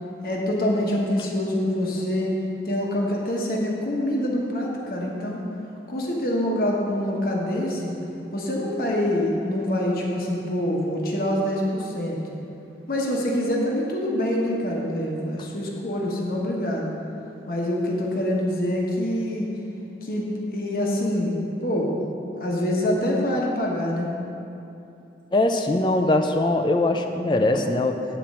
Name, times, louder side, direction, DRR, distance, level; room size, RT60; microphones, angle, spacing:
voice 1, 0.2-2.3 2.6-5.4 5.9-7.9 8.3-12.2 12.9-16.9 17.5-19.5 20.0-20.3 20.5-21.3 21.6-21.9 22.3-24.1, left 1 dB, 55° left, -2 dB, 1.1 m, -25 dB
voice 2, 25.3-28.1, left 2 dB, 25° left, 5 dB, 0.4 m, -21 dB
8.4 x 4.5 x 7.3 m, 2.8 s
head